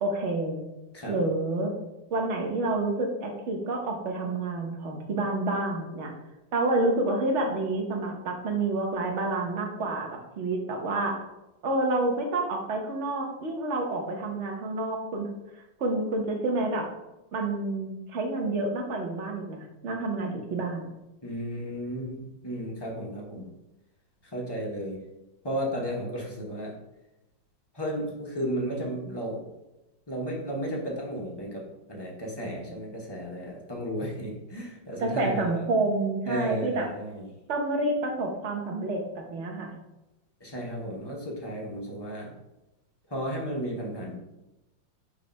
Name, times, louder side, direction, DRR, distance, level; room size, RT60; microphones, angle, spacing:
voice 1, 0.0-0.6 1.1-1.7 2.1-6.1 6.5-10.1 10.4-11.2 11.6-15.3 15.8-16.9 17.3-20.9 35.0-36.9 37.5-39.7, right 2 dB, 45° right, 2 dB, 1.1 m, -28 dB
voice 2, 21.2-23.5 24.2-25.0 25.4-26.7 27.7-29.4 30.1-35.6 36.3-37.3 40.4-42.3 43.1-44.2, equal, 25° left, -2 dB, 0.6 m, -34 dB
5.6 x 3.2 x 5.2 m, 0.97 s
omnidirectional pair, 2.1 m